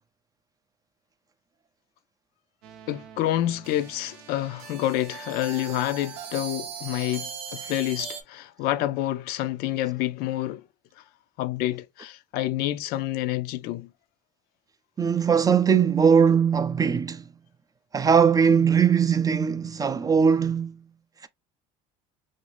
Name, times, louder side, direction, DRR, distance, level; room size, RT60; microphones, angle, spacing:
sound 1, 2.6-8.2, right 8 dB, 85° right, 0.6 m, -40 dB
voice 1, 2.9-10.6 11.4-13.9, left 14 dB, 70° left, 0.4 m, -28 dB
voice 2, 15.0-17.2 17.9-20.8 21.2-21.3, right 6 dB, 20° right, 0.3 m, -20 dB
3.0 x 2.6 x 3.1 m
supercardioid pair, 100°, 17 cm